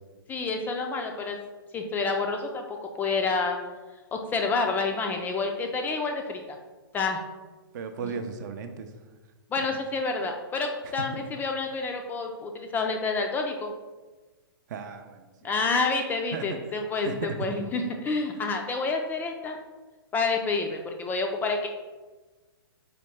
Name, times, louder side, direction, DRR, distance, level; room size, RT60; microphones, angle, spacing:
voice 1, 0.3-1.4 1.7-3.6 4.1-6.6 6.9-7.2 9.5-13.7 15.4-19.6 20.1-21.7, left 4 dB, 15° left, 4 dB, 0.3 m, -28 dB
voice 2, 7.7-8.9 9.6-9.7 10.8-11.2 14.7-15.5 16.3-16.5 17.0-17.5, right 5 dB, 50° right, 7 dB, 0.5 m, -36 dB
4.3 x 3.4 x 3.1 m, 1.2 s
hypercardioid pair, 120°, 13 cm